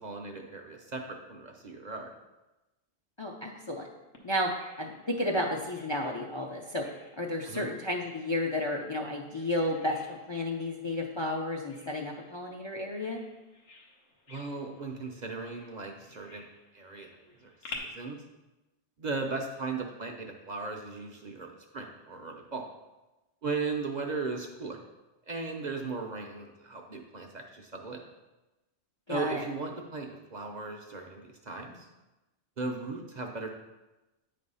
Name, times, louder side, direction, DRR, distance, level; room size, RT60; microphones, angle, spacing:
voice 1, 0.0-2.1 7.5-7.7 14.3-16.4 16.7-18.2 19.0-22.7 23.4-24.8 25.3-28.0 29.1-31.9 32.6-33.5, right 3 dB, 45° right, 3 dB, 0.7 m, -37 dB
voice 2, 3.2-3.9 4.2-13.2 29.1-29.5, left 1 dB, 35° left, 0 dB, 0.5 m, -32 dB
Bird vocalization bird call bird song, 4.1-17.8, left 4 dB, 85° left, 1.4 m, -53 dB
9.0 x 3.4 x 5.4 m, 1.1 s
omnidirectional pair, 1.2 m